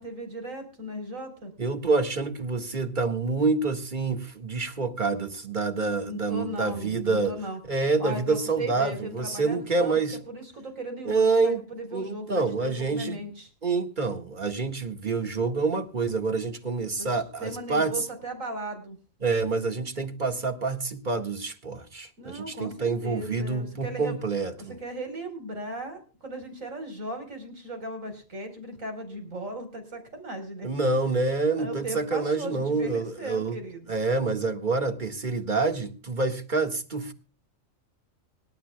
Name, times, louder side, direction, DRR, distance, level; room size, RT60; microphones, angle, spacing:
voice 1, 0.0-1.5 6.0-7.6 8.0-10.0 10.3-13.5 16.9-19.0 22.2-24.2 24.6-30.7 31.6-34.0, right 1 dB, 75° right, 4.5 m, -37 dB
voice 2, 1.6-7.3 7.7-10.2 11.1-11.6 11.9-13.2 13.6-18.0 19.2-24.7 30.6-33.6 33.9-37.1, right 3 dB, 35° right, 1.8 m, -27 dB
25.0 x 12.0 x 2.2 m
omnidirectional pair, 1.4 m